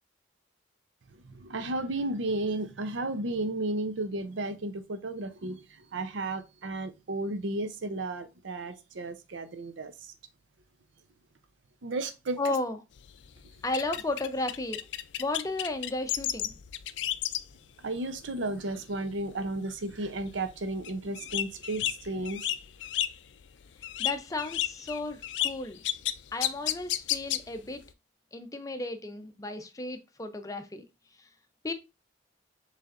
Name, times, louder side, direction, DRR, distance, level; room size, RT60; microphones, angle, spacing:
voice 1, 1.2-10.1 11.8-12.6 17.8-22.6, right 2 dB, 85° right, 0.6 m, -33 dB
voice 2, 12.4-12.8 13.6-14.8 15.2-16.5 24.0-25.8 26.3-27.8 28.3-30.8 31.2-31.3 31.6-31.7, left 2 dB, 20° left, 0.5 m, -34 dB
sound 1, 13.0-17.6 18.0-18.3 18.7-19.2 19.5-19.6 19.9-23.4 23.7-27.8, left 13 dB, 75° left, 0.4 m, -32 dB
6.6 x 3.2 x 2.5 m
head